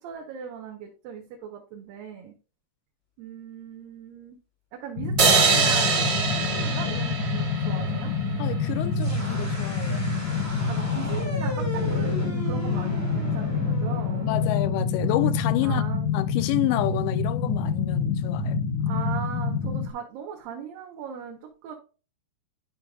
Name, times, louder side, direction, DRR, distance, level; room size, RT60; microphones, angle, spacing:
voice 1, 0.0-2.3 3.2-4.4 4.7-8.1 10.7-14.3 15.6-16.1 18.8-21.8, right 7 dB, 75° right, 2.6 m, -38 dB
sound 1, 5.0-19.9, left 4 dB, 70° left, 2.0 m, -27 dB
sound 2, 5.2-8.5, right 5 dB, 40° right, 1.7 m, -24 dB
voice 2, 8.4-10.1 14.2-15.8 16.1-18.6, left 15 dB, 85° left, 2.5 m, -29 dB
sound 3, 8.9-15.7, left 1 dB, 20° right, 0.4 m, -38 dB
11.5 x 5.2 x 2.3 m
omnidirectional pair, 4.4 m